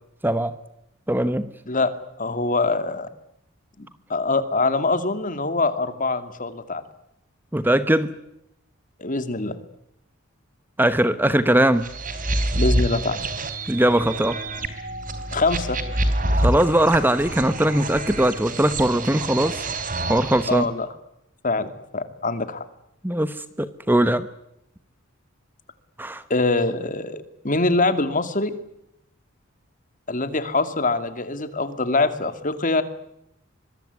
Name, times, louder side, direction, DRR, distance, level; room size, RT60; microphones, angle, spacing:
voice 1, 0.2-0.5 1.1-1.5 7.5-8.1 10.8-11.9 13.7-14.4 16.3-19.7 20.1-20.7 23.0-24.3 26.0-26.2, right 1 dB, 10° right, 13 dB, 1.0 m, -20 dB
voice 2, 2.2-3.1 3.8-6.8 9.0-9.6 12.5-13.2 15.3-15.8 20.5-20.9 21.4-22.6 26.3-28.5 30.1-32.8, left 3 dB, 40° left, 11 dB, 2.5 m, -24 dB
sound 1, 11.8-20.6, right 1 dB, 40° right, 3.9 m, -27 dB
25.0 x 23.0 x 9.6 m, 0.80 s
head